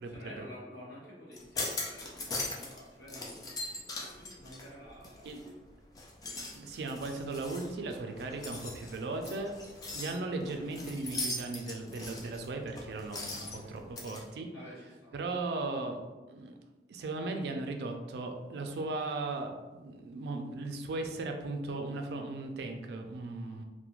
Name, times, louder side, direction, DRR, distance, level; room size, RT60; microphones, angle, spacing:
voice 1, 0.0-5.4 13.2-13.8 14.5-15.1, left 1 dB, 65° left, -7 dB, 1.1 m, -50 dB
sound 1, 1.3-2.8 3.1-5.5 5.9-14.2, left 2 dB, 20° left, 0.3 m, -40 dB
voice 2, 6.5-9.5 9.9-14.5 15.1-16.0 16.3-16.5 16.9-23.6, right 2 dB, 70° right, 4 dB, 0.3 m, -37 dB
2.4 x 2.1 x 3.0 m, 1.2 s
head